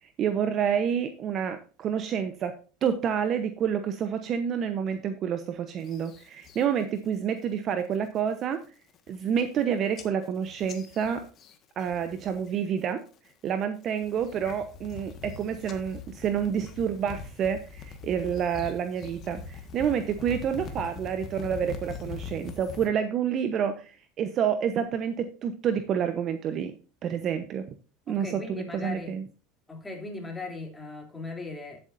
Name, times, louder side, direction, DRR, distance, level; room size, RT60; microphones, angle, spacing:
voice 1, 0.0-2.5 2.8-8.6 9.1-11.3 11.8-13.0 13.4-26.7 27.0-27.7 28.1-29.2, right 8 dB, 45° right, 1.0 m, -28 dB
sound 1, 5.8-6.6 7.0-7.4 7.8-8.2 8.6-8.7 8.9-9.6 10.0-12.5 12.8-13.3 13.8-22.9, left 6 dB, 40° left, 1.7 m, -42 dB
voice 2, 28.1-29.2 29.7-31.8, left 3 dB, 15° left, 3.1 m, -38 dB
14.0 x 8.0 x 2.7 m
supercardioid pair, 105°, 0 cm